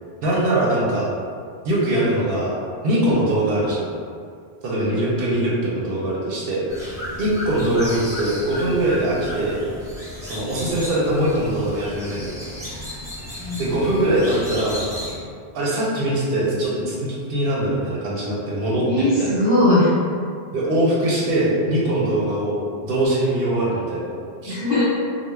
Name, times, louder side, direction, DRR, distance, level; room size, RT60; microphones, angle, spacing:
voice 1, 0.2-1.1 1.6-2.6 2.8-3.9 4.6-6.6 7.2-9.6 10.3-12.3 13.6-14.9 15.5-19.3 20.5-24.6, right 1 dB, 70° right, -5 dB, 0.8 m, -22 dB
sound 1, 6.7-15.2, left 1 dB, 5° right, 0.5 m, -34 dB
voice 2, 18.8-19.9 24.5-24.8, left 1 dB, 60° left, -9 dB, 1.0 m, -19 dB
2.2 x 2.1 x 3.1 m, 2.2 s
omnidirectional pair, 1.1 m